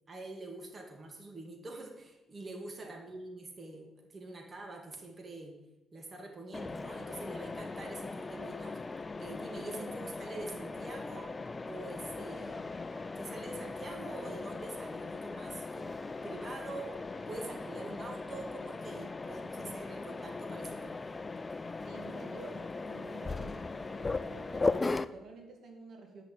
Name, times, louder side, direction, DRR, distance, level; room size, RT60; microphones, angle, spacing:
voice 1, 0.1-5.6 5.9-8.8 9.2-12.7 13.2-15.9 16.2-21.0, right 2 dB, 35° right, 2 dB, 2.3 m, -45 dB
Mechanisms, 6.5-25.1, left 3 dB, 25° left, 0.5 m, -38 dB
voice 2, 9.7-10.0 21.8-26.2, right 3 dB, 65° right, 3 dB, 2.4 m, -50 dB
sound 1, 11.8-18.7, left 1 dB, 5° left, 1.8 m, -58 dB
11.0 x 6.8 x 7.7 m, 0.95 s
cardioid pair, 90°, 0 cm